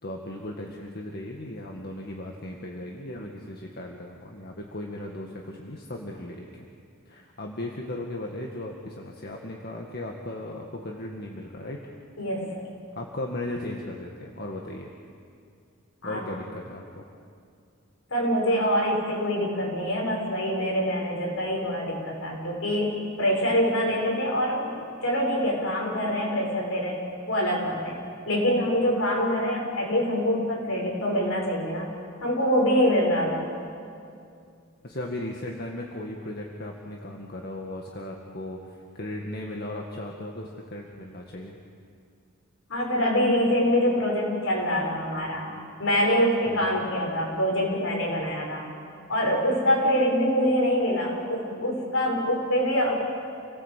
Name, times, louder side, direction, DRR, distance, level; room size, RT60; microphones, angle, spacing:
voice 1, 0.0-6.7 7.1-11.8 13.0-14.9 16.0-17.0 34.8-41.6 46.5-46.6, left 1 dB, 50° left, 0 dB, 1.9 m, -36 dB
voice 2, 12.2-12.6 16.0-16.2 18.1-22.9 23.2-24.8 25.0-27.0 27.3-28.0 28.3-31.9 32.2-33.5 42.7-45.5 45.8-48.7 49.1-53.0, equal, 70° left, -1 dB, 6.7 m, -25 dB
29.0 x 18.5 x 8.4 m, 2.4 s
head